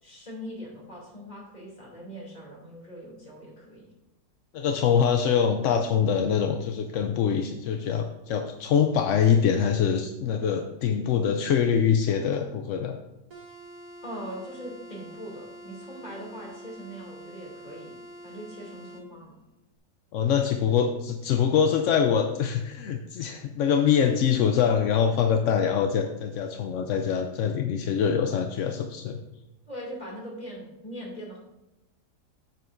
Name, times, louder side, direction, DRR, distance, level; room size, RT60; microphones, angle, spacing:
voice 1, 0.0-3.9 14.0-19.3 29.7-31.4, equal, 25° left, -4 dB, 2.6 m, -41 dB
voice 2, 4.5-13.0 20.1-29.2, left 7 dB, 70° left, 5 dB, 0.7 m, -24 dB
sound 1, 13.3-19.1, equal, 60° right, 1.5 m, -46 dB
9.3 x 7.7 x 2.6 m, 0.97 s
omnidirectional pair, 1.7 m